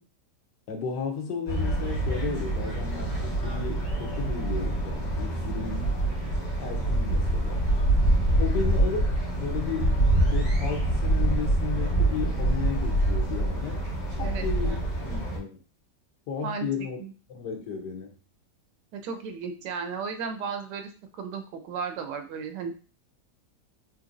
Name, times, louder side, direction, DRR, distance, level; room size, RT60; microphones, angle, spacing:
voice 1, 0.7-6.0 6.6-7.7 8.4-10.0 10.3-13.9 14.2-15.6 16.3-17.0 17.3-18.1, left 5 dB, 90° left, 3 dB, 1.5 m, -34 dB
sound 1, 1.5-15.4, right 1 dB, 45° left, 1.8 m, -25 dB
voice 2, 14.2-14.8 16.4-16.7 17.0-17.1 18.9-22.8, right 5 dB, 85° right, 7 dB, 1.3 m, -35 dB
3.9 x 2.9 x 2.5 m, 0.36 s
omnidirectional pair, 1.8 m